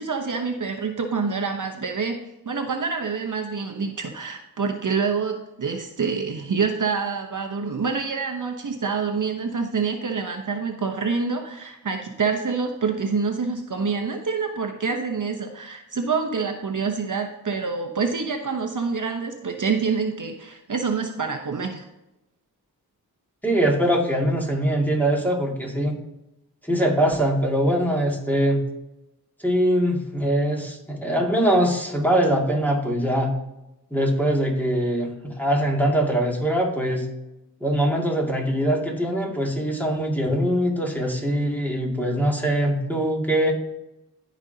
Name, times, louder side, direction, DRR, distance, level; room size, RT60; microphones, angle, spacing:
voice 1, 0.0-2.2 2.4-21.9, right 5 dB, 50° right, 3 dB, 0.9 m, -26 dB
voice 2, 23.4-25.9 26.6-28.6 29.4-33.3 33.9-37.1 37.6-43.5, right 1 dB, 5° left, -1 dB, 2.3 m, -22 dB
15.0 x 5.3 x 2.8 m, 0.93 s
cardioid pair, 55°, 38 cm